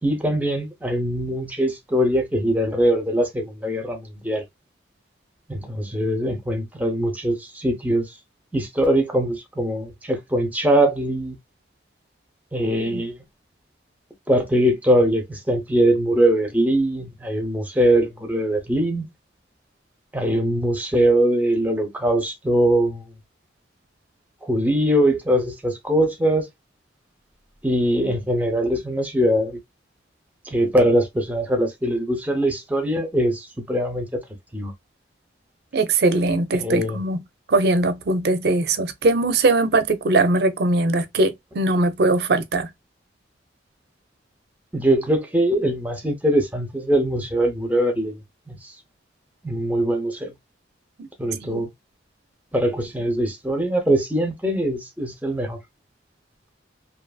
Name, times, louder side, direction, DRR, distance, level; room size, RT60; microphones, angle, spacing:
voice 1, 0.0-4.4 5.5-8.2 8.5-11.4 12.5-13.2 14.3-19.1 20.1-23.0 24.4-26.5 27.6-29.6 30.4-34.2 34.5-34.7 36.5-37.0 44.7-48.7 49.4-50.3 51.2-51.7 52.5-55.6, right 1 dB, 10° right, 0.6 m, -22 dB
voice 2, 35.7-37.2 37.5-42.7 51.0-51.1 51.4-51.6, right 2 dB, 55° right, 0.4 m, -21 dB
2.7 x 2.5 x 2.2 m
head